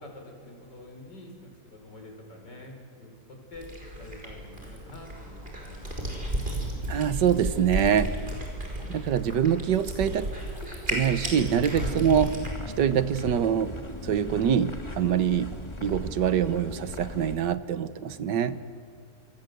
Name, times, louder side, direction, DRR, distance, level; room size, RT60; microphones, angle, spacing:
voice 1, 0.0-3.7 4.0-6.7 7.8-8.5 11.7-12.2 18.2-18.9, left 2 dB, 85° left, 3 dB, 5.3 m, -46 dB
Cat, 3.5-12.5, right 1 dB, 30° right, 5.5 m, -34 dB
sound 1, 6.6-17.4, left 1 dB, 15° left, 2.0 m, -41 dB
voice 2, 6.9-8.1 8.9-10.3 10.8-12.3 12.8-13.7 14.0-15.5 15.8-18.6, right 8 dB, 85° right, 13 dB, 1.7 m, -24 dB
26.5 x 26.0 x 8.0 m, 2.2 s
omnidirectional pair, 1.8 m